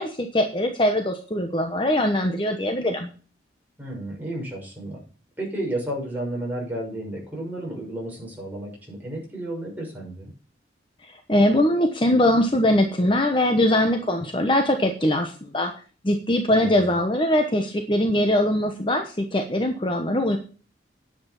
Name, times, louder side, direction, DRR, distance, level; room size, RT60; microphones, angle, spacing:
voice 1, 0.0-3.1 11.0-15.7 16.0-20.4, left 1 dB, 30° left, 4 dB, 1.1 m, -22 dB
voice 2, 3.8-5.0 5.4-10.3 16.5-16.8, right 1 dB, 10° right, -3 dB, 6.5 m, -32 dB
10.0 x 8.1 x 5.5 m, 0.38 s
head